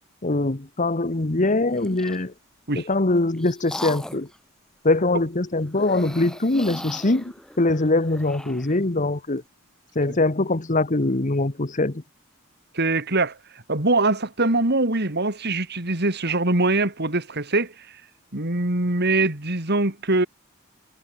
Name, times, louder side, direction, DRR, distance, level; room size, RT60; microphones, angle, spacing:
voice 1, 0.2-2.3 2.8-4.3 4.8-7.2 7.6-9.4 9.9-12.0, left 2 dB, 40° left, 1.3 m, -22 dB
sound 1, 1.6-2.3 2.9-4.4 5.7-8.8, left 1 dB, 5° left, 5.5 m, -38 dB
voice 2, 12.8-13.3 13.7-17.7 18.3-20.3, right 2 dB, 55° right, 3.4 m, -22 dB
head